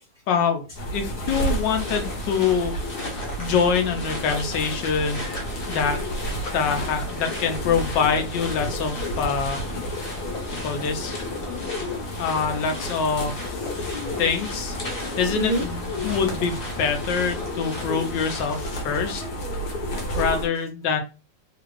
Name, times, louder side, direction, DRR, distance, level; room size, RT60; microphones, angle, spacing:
voice 1, 0.3-0.6 0.9-2.7 3.1-5.2 5.7-6.0 6.3-9.6 10.5-11.2 12.2-13.7 14.2-14.8 15.2-19.2 20.2-21.0, left 6 dB, 80° left, 6 dB, 1.4 m, -25 dB
sound 1, 0.7-20.5, equal, 65° left, 1.4 m, -31 dB
sound 2, 1.3-18.8, left 1 dB, 40° left, 1.0 m, -38 dB
voice 2, 13.7-14.2 14.9-15.6 16.0-16.1 19.1-19.2 19.5-20.2, right 3 dB, 65° right, -1 dB, 0.5 m, -32 dB
3.4 x 2.5 x 3.1 m, 0.30 s
omnidirectional pair, 1.9 m